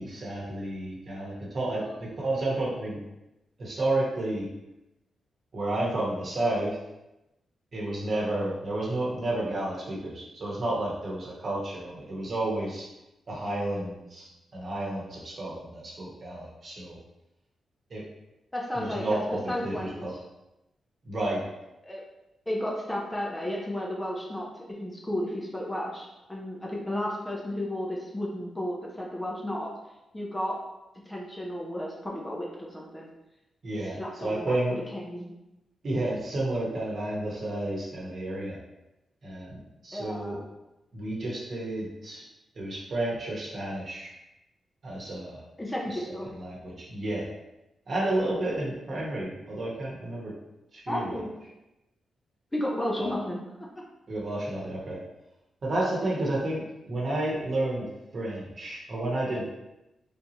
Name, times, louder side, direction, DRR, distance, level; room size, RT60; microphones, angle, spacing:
voice 1, 0.0-3.0 3.6-4.5 5.5-6.8 7.7-12.8 13.3-17.0 17.9-18.0 18.7-20.1 21.1-21.4 33.6-34.8 35.8-38.6 39.2-40.4 40.9-42.2 42.6-44.1 44.8-45.4 45.9-47.3 47.9-50.3 50.7-51.1 53.0-53.1 54.1-55.0 55.6-56.6 56.9-57.8 58.1-59.5, right 1 dB, 45° right, -5 dB, 1.0 m, -31 dB
voice 2, 18.5-19.2 19.5-20.0 21.8-22.0 22.5-29.7 30.1-30.6 31.1-33.1 33.8-35.3 39.9-40.4 45.6-46.3 50.9-51.3 52.5-53.4 56.2-56.3, left 1 dB, 15° left, -3 dB, 0.6 m, -33 dB
3.5 x 2.7 x 2.8 m, 0.94 s
cardioid pair, 110°, 0 cm